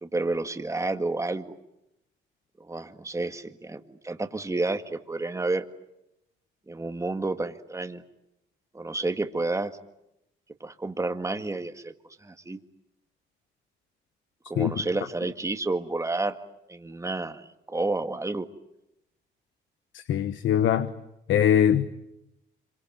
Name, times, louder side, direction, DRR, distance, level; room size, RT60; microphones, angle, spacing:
voice 1, 0.0-1.6 2.7-5.6 6.7-8.0 8.7-9.7 10.6-11.9 12.2-12.6 14.5-16.4 16.7-18.5, right 2 dB, 15° right, 8 dB, 1.8 m, -30 dB
voice 2, 19.9-20.9 21.3-21.9, left 9 dB, 75° left, 12 dB, 1.2 m, -22 dB
26.5 x 24.0 x 9.2 m, 0.86 s
cardioid pair, 90°, 20 cm